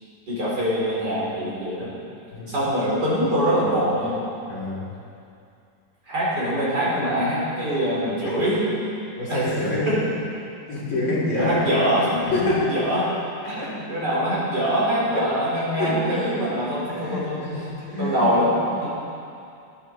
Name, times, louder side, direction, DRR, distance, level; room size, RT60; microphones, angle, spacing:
voice 1, 0.3-1.9 2.5-4.2 6.1-8.6 9.3-9.4 9.9-10.0 10.9-12.3 12.7-13.1 13.5-17.7 18.0-18.9, equal, 50° right, -7 dB, 4.8 m, -24 dB
voice 2, 4.5-4.9 8.2-8.3 9.2-9.9 10.7-11.7 12.2-12.7 13.6-13.8 15.1-15.3 15.8-16.5 16.9-18.3, left 2 dB, 70° left, -8 dB, 4.6 m, -27 dB
19.5 x 10.5 x 4.5 m, 2.5 s
omnidirectional pair, 2.3 m